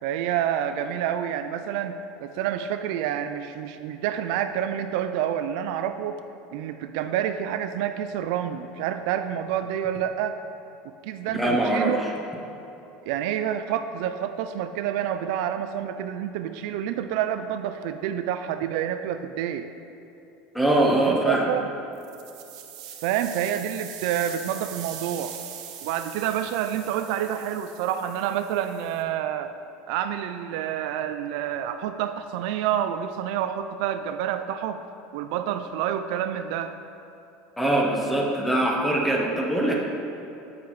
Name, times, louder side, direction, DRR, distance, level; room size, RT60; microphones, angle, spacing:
voice 1, 0.0-6.2 6.5-10.4 11.0-12.0 13.0-19.7 21.1-21.7 23.0-25.4 25.8-29.5 29.9-34.8 35.1-36.8, right 10 dB, 65° right, 9 dB, 0.4 m, -28 dB
voice 2, 11.3-12.1 20.5-21.5 37.6-39.8, right 1 dB, ahead, -2 dB, 1.0 m, -23 dB
sound 1, 21.9-29.0, right 9 dB, 90° right, 1.1 m, -41 dB
10.5 x 8.8 x 3.1 m, 2.9 s
cardioid pair, 160°, 3 cm